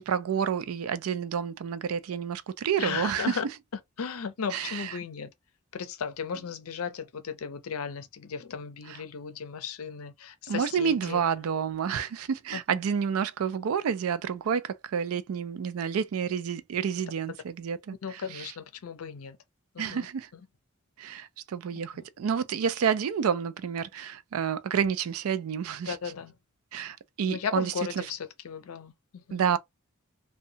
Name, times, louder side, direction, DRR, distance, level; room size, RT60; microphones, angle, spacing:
voice 1, 0.0-3.4 4.5-5.0 10.5-18.5 19.8-20.3 21.0-26.0 26.7-27.7 29.3-29.6, right 7 dB, 80° right, 0.4 m, -29 dB
voice 2, 2.8-3.4 4.0-5.3 5.7-11.2 12.5-12.8 18.0-19.4 19.7-20.1 21.9-22.0 25.9-26.3 27.3-29.4, left 6 dB, 80° left, 0.5 m, -36 dB
2.7 x 2.2 x 2.7 m
head